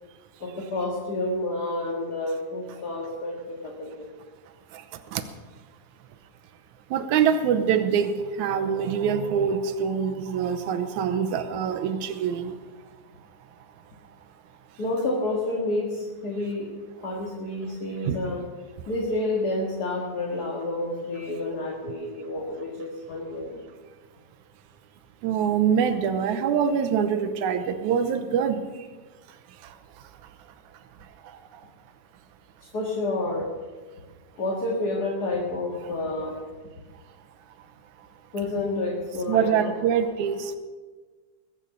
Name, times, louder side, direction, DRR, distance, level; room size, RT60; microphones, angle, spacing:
voice 1, 0.4-4.0 14.8-16.7 17.0-18.5 18.9-23.6 32.7-33.5 34.4-36.4 38.3-39.8, left 2 dB, 40° left, -2 dB, 2.0 m, -29 dB
voice 2, 4.7-5.2 6.9-12.6 18.0-18.2 25.2-28.9 29.6-29.8 31.0-31.6 39.3-40.6, right 7 dB, 90° right, 9 dB, 2.3 m, -25 dB
21.5 x 7.2 x 6.8 m, 1.4 s
omnidirectional pair, 3.3 m